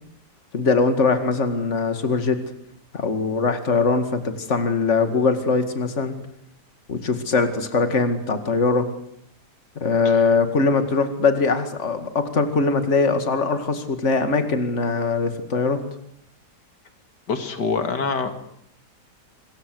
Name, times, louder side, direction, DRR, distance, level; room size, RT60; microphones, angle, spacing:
voice 1, 0.5-2.4 2.9-6.1 6.9-8.9 9.8-15.8, left 4 dB, 45° left, 8 dB, 2.5 m, -21 dB
voice 2, 17.3-18.3, left 4 dB, 85° left, 8 dB, 2.7 m, -25 dB
26.0 x 21.5 x 7.9 m, 0.72 s
omnidirectional pair, 1.8 m